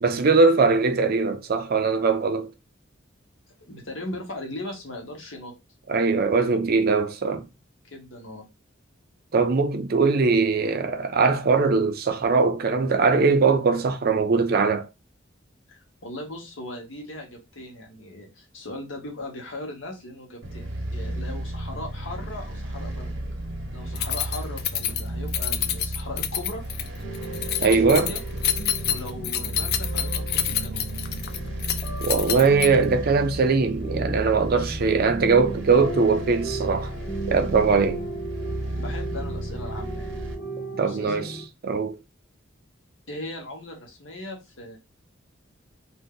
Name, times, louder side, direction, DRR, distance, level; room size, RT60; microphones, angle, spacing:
voice 1, 0.0-2.5 5.9-7.5 9.3-14.9 27.6-28.1 32.0-36.9 37.3-38.0 40.8-42.0, right 4 dB, 50° right, 0.5 m, -21 dB
voice 2, 3.6-5.5 7.9-8.5 15.7-23.2 23.7-26.6 27.6-28.2 28.9-30.9 38.7-40.1 40.7-41.3 43.1-44.8, left 1 dB, 80° left, 1.1 m, -38 dB
sound 1, 20.4-40.3, right 1 dB, 80° right, 0.9 m, -33 dB
Keys jangling, 24.0-33.0, left 10 dB, 55° left, 0.3 m, -28 dB
sound 2, 27.0-41.5, right 2 dB, 40° left, 1.0 m, -37 dB
2.7 x 2.2 x 3.6 m
head